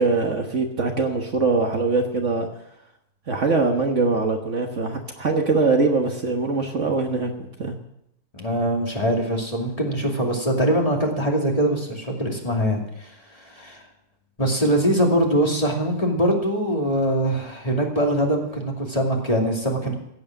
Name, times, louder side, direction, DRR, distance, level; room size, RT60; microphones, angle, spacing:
voice 1, 0.0-2.5 3.3-7.3 7.6-7.7, right 3 dB, 50° right, 3 dB, 1.6 m, -22 dB
voice 2, 8.3-13.8 14.4-19.9, equal, 20° left, 0 dB, 2.6 m, -23 dB
16.0 x 8.7 x 7.5 m, 0.80 s
omnidirectional pair, 1.7 m